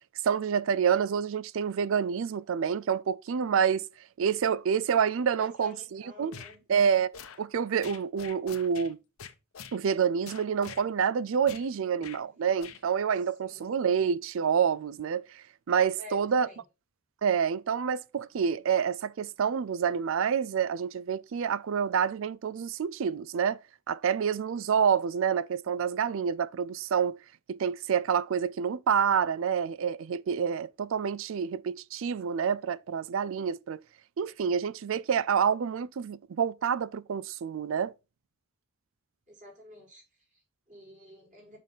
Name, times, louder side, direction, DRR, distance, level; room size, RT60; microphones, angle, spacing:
voice 1, 0.2-3.9 4.2-6.3 6.7-9.0 9.7-16.5 17.2-23.6 23.9-27.2 27.5-33.8 34.2-37.9, right 7 dB, 65° right, 0.4 m, -28 dB
voice 2, 5.3-6.6 11.7-12.4 13.1-13.7 15.9-16.6 39.3-41.6, equal, 35° right, 4.9 m, -50 dB
sound 1, 6.3-6.5 7.1-7.4 7.8-8.9 9.2-9.8 10.2-10.8 11.5-11.7 12.0-12.2 12.6-12.8, left 7 dB, 85° left, 0.9 m, -45 dB
7.4 x 5.4 x 4.0 m
head